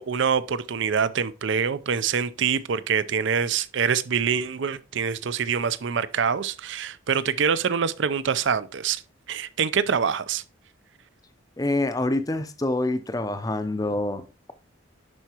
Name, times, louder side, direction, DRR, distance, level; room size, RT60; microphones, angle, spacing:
voice 1, 0.0-9.0 9.3-10.4, right 6 dB, 65° right, 0.5 m, -25 dB
voice 2, 11.6-14.5, left 2 dB, 20° left, 0.5 m, -26 dB
10.5 x 4.5 x 2.9 m
head